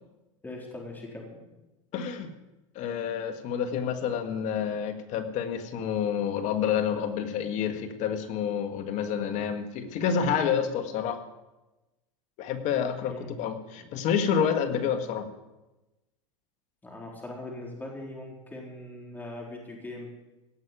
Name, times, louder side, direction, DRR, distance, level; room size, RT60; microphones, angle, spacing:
voice 1, 0.4-1.3 13.0-13.3 13.8-13.9 16.8-20.1, left 2 dB, 10° left, -1 dB, 4.0 m, -41 dB
voice 2, 1.9-2.3 2.8-11.2 12.4-15.3, left 7 dB, 50° left, 7 dB, 1.7 m, -28 dB
17.0 x 6.5 x 9.1 m, 1.0 s
supercardioid pair, 120°, 16 cm